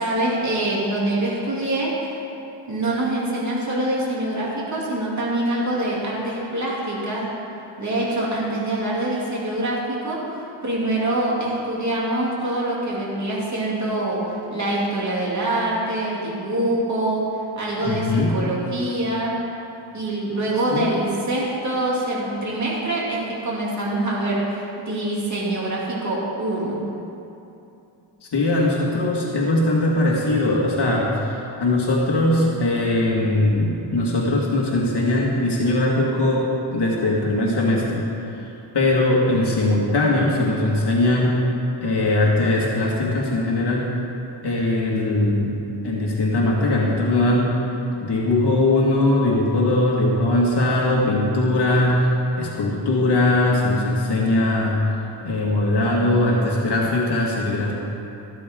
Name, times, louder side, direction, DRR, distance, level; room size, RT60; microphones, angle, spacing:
voice 1, 0.0-2.2 2.7-7.3 7.8-17.3 17.6-19.4 19.9-26.8, right 1 dB, 35° right, -6 dB, 2.9 m, -25 dB
voice 2, 17.8-18.4 20.7-20.9 28.2-38.0 38.4-41.4 41.8-43.9 44.4-47.6 48.0-57.7, left 2 dB, 55° left, -3 dB, 2.0 m, -20 dB
14.0 x 13.5 x 3.8 m, 2.8 s
wide cardioid pair, 135°, 48 cm